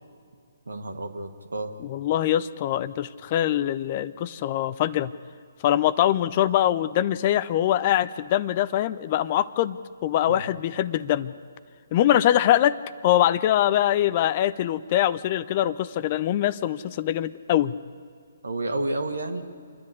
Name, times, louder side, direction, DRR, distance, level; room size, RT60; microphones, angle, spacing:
voice 1, 0.7-1.7 10.3-10.4 18.4-19.4, right 2 dB, 70° right, 7 dB, 1.8 m, -30 dB
voice 2, 1.8-5.1 5.6-11.3 11.9-17.7, left 12 dB, 35° left, 17 dB, 0.5 m, -23 dB
28.0 x 10.5 x 9.8 m, 2.3 s
figure-of-eight pair, 135°, 0 cm